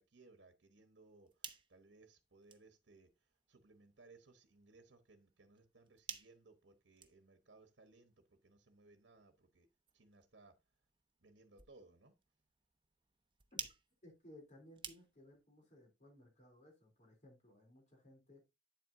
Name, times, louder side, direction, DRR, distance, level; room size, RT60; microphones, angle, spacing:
voice 1, 0.0-3.1 3.5-9.7 9.9-10.5 11.2-12.1, right 3 dB, 80° right, 1.1 m, -64 dB
sound 1, 1.0-15.4, right 7 dB, 30° right, 0.9 m, -56 dB
voice 2, 14.0-18.4, left 1 dB, 45° left, 3.3 m, -61 dB
9.0 x 7.7 x 2.6 m
head